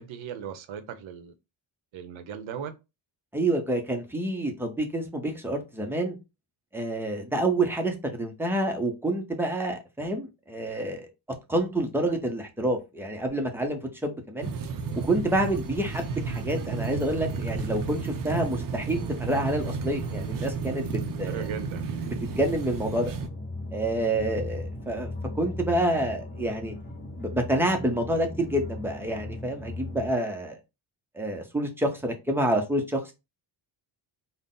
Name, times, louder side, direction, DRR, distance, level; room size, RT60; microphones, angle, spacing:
voice 1, 0.0-1.3 1.9-2.7 20.2-20.5 21.3-21.8, right 7 dB, 75° right, 0.8 m, -38 dB
voice 2, 3.3-6.2 6.7-11.1 11.5-14.5 15.1-21.5 22.1-23.1 23.7-26.8 27.2-30.6 31.1-33.0, right 1 dB, 5° right, 0.6 m, -28 dB
sound 1, 14.4-23.3, right 4 dB, 45° right, 0.5 m, -32 dB
sound 2, 22.2-30.1, left 2 dB, 25° left, 1.2 m, -38 dB
3.9 x 2.1 x 3.7 m
wide cardioid pair, 160°, 47 cm